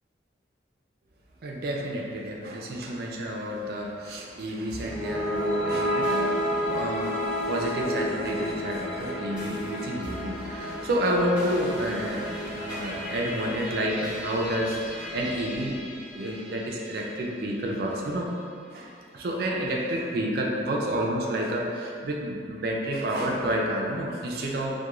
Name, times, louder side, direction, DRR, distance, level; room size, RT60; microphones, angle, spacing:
voice 1, 1.4-15.8 16.1-18.3 18.7-24.8, right 1 dB, 55° right, -1 dB, 0.3 m, -30 dB
sound 1, 4.7-17.0, equal, 10° right, 0.7 m, -32 dB
2.3 x 2.2 x 2.9 m, 2.4 s
head